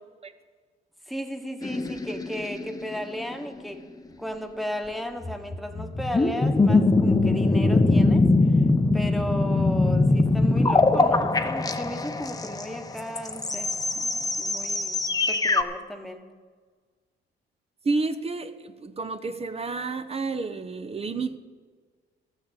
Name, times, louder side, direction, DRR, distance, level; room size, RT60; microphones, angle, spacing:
voice 1, 1.1-3.8 4.2-8.3 8.9-16.3, equal, ahead, 1.3 m, -35 dB
sound 1, 1.6-3.8 5.2-15.6, left 2 dB, 20° left, 0.8 m, -22 dB
voice 2, 17.8-21.4, right 3 dB, 30° right, 0.8 m, -30 dB
13.0 x 6.6 x 8.3 m
cardioid pair, 90°, 20 cm